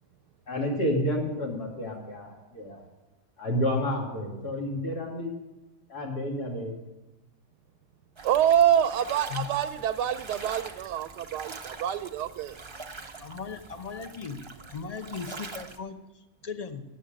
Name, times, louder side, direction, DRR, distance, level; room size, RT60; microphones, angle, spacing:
voice 1, 0.5-2.8 3.4-5.3 5.9-6.8, left 1 dB, 65° left, -1 dB, 3.2 m, -30 dB
sound 1, 8.2-15.8, right 4 dB, 45° right, 0.3 m, -43 dB
voice 2, 8.2-12.6, right 10 dB, 80° right, 11 dB, 1.1 m, -26 dB
voice 3, 9.0-9.5 10.4-10.6 13.2-14.4 14.7-16.8, left 6 dB, 35° left, 8 dB, 0.6 m, -38 dB
14.5 x 9.8 x 5.1 m, 1.1 s
omnidirectional pair, 1.8 m